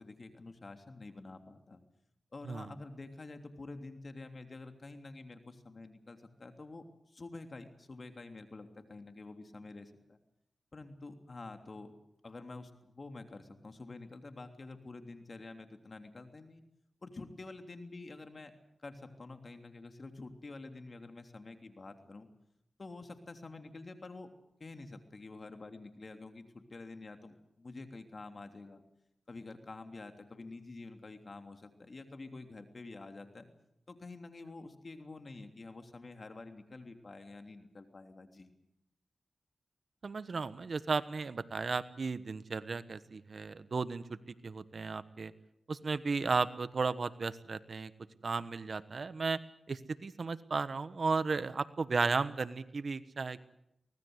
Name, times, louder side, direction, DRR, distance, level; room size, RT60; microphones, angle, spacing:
voice 1, 0.0-1.8 2.3-10.2 10.7-11.9 12.2-16.6 17.0-18.5 18.8-22.3 22.8-24.3 24.6-28.8 29.3-33.5 33.9-38.5, left 3 dB, 50° left, 6 dB, 3.2 m, -48 dB
voice 2, 40.0-44.2 44.4-45.3 45.7-47.9 48.2-49.4 49.7-53.4, right 4 dB, 60° right, 14 dB, 1.2 m, -34 dB
24.5 x 19.0 x 8.1 m, 0.79 s
cardioid pair, 55°, 0 cm